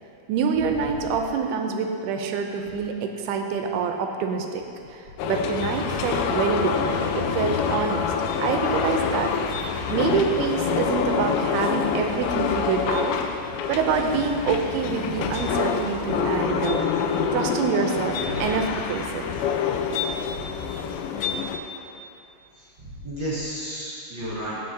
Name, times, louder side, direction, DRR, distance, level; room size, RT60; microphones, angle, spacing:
voice 1, 0.3-4.6 4.9-8.1 8.4-9.3 9.9-13.2 13.7-16.8 17.3-19.3, right 6 dB, 85° right, 4 dB, 2.5 m, -26 dB
sound 1, 5.2-21.6, left 6 dB, 85° left, 2.2 m, -26 dB
voice 2, 22.8-24.6, right 1 dB, 50° right, -10 dB, 1.4 m, -32 dB
16.0 x 6.4 x 2.7 m, 2.7 s
omnidirectional pair, 4.6 m